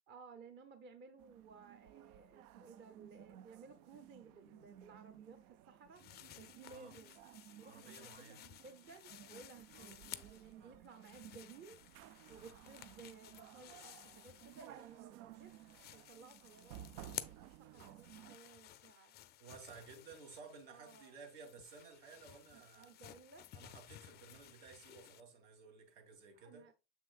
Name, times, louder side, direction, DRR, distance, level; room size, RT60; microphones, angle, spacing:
voice 1, 0.1-6.1 6.4-7.2 7.6-11.8 12.3-19.1 20.7-21.1 22.4-23.5 26.3-26.7, right 5 dB, 25° right, 0.8 m, -58 dB
sound 1, 1.2-18.4, right 12 dB, 80° right, 0.6 m, -57 dB
sound 2, 5.9-10.5 10.8-15.0 15.3-25.2, left 13 dB, 25° left, 0.3 m, -55 dB
voice 2, 6.6-6.9 7.6-8.4 9.7-9.9 10.5-10.8 19.4-22.9 23.5-26.6, right 5 dB, 65° right, 3.1 m, -56 dB
7.2 x 6.1 x 2.4 m
supercardioid pair, 120°, 43 cm